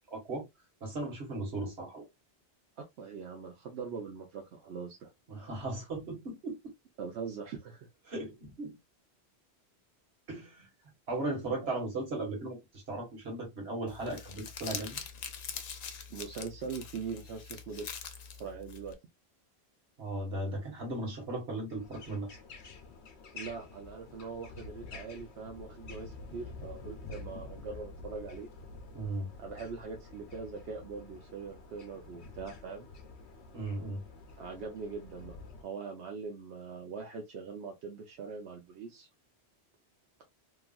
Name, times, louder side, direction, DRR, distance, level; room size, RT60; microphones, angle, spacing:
voice 1, 0.1-0.4 0.8-2.0 5.3-6.5 8.1-8.8 10.3-10.7 11.1-15.0 20.0-22.3 28.9-29.3 33.5-34.0, right 2 dB, 70° right, 1.6 m, -37 dB
voice 2, 2.8-5.1 7.0-7.9 16.1-18.0 18.4-18.9 23.3-28.5 29.4-32.9 34.4-35.3 35.6-39.1, right 5 dB, 90° right, 0.9 m, -42 dB
Crumpling crinkling, 13.9-18.9, left 6 dB, 55° left, 0.5 m, -43 dB
sound 1, 21.7-35.6, left 3 dB, 85° left, 0.9 m, -48 dB
3.0 x 2.3 x 2.3 m
omnidirectional pair, 1.1 m